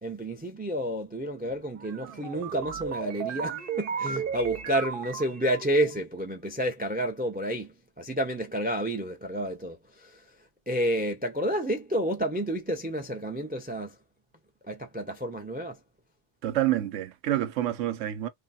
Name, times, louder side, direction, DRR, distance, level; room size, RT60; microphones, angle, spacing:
voice 1, 0.0-14.0 14.6-15.8, right 1 dB, 15° right, 0.4 m, -30 dB
sound 1, 1.8-6.0, right 7 dB, 55° right, 0.7 m, -35 dB
voice 2, 16.4-18.3, right 13 dB, 85° right, 1.0 m, -28 dB
3.3 x 2.2 x 4.1 m
omnidirectional pair, 1.2 m